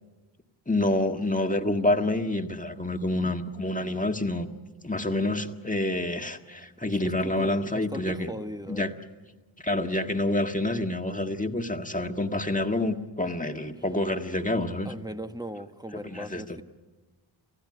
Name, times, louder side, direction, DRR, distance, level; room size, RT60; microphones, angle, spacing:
voice 1, 0.7-4.5 4.8-8.3 8.7-8.9 9.6-14.9 16.0-16.6, left 1 dB, 15° left, 5 dB, 1.8 m, -28 dB
voice 2, 6.9-8.8 13.8-13.9 14.8-16.6, equal, 10° right, 8 dB, 1.3 m, -39 dB
28.5 x 15.5 x 9.7 m, 1.3 s
cardioid pair, 45°, 48 cm